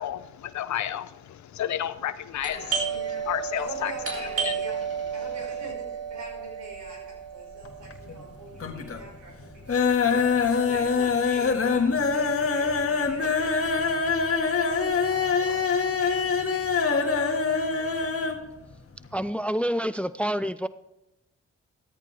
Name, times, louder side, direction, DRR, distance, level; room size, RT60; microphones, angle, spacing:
voice 1, 0.0-2.9 3.2-3.9 4.4-4.5, left 11 dB, 75° left, 14 dB, 0.8 m, -31 dB
Doorbell, 2.4-11.8 12.0-12.1 12.8-13.1 13.4-14.8, right 6 dB, 55° right, 4.0 m, -33 dB
voice 2, 2.8-3.2 3.5-16.6 16.9-17.1, right 2 dB, 75° right, -1 dB, 5.5 m, -45 dB
sound 1, 7.6-8.3 8.6-9.1 9.4-18.4 18.7-18.8 19.1-19.2, left 5 dB, 50° left, 1.8 m, -24 dB
voice 3, 19.1-20.7, equal, 5° left, 15 dB, 0.6 m, -27 dB
14.0 x 13.5 x 3.4 m, 0.93 s
supercardioid pair, 40°, 29 cm